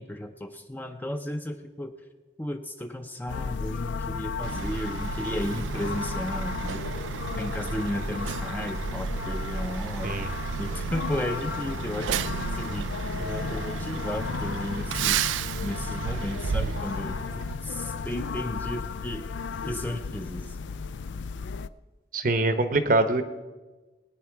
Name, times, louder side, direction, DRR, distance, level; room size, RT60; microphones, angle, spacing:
voice 1, 0.0-1.9 2.4-6.9 7.4-10.2 10.6-12.9 13.2-15.2 15.6-19.2 19.6-20.6, left 1 dB, 10° left, 6 dB, 0.6 m, -34 dB
sound 1, 3.3-21.7, left 5 dB, 75° left, 0.4 m, -34 dB
Truck, 4.4-17.6, right 8 dB, 90° right, 0.3 m, -33 dB
voice 2, 22.1-23.2, right 2 dB, 45° right, 9 dB, 0.8 m, -23 dB
20.0 x 9.3 x 4.7 m, 1.2 s
head